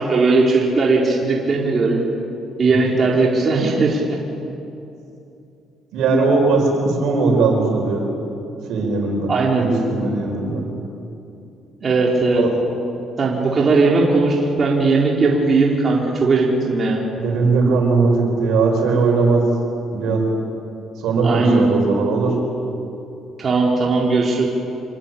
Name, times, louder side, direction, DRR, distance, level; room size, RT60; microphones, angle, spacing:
voice 1, 0.0-2.0 2.6-4.2 9.3-9.6 11.8-12.4 13.2-17.0 21.2-21.7 23.4-24.5, right 3 dB, 40° right, -3 dB, 4.5 m, -18 dB
voice 2, 5.9-8.0 8.7-10.6 12.3-12.5 17.2-19.5 19.9-20.2 21.0-22.3, right 4 dB, 75° right, 1 dB, 7.4 m, -19 dB
28.0 x 24.0 x 8.8 m, 2.8 s
cardioid pair, 90°, 0 cm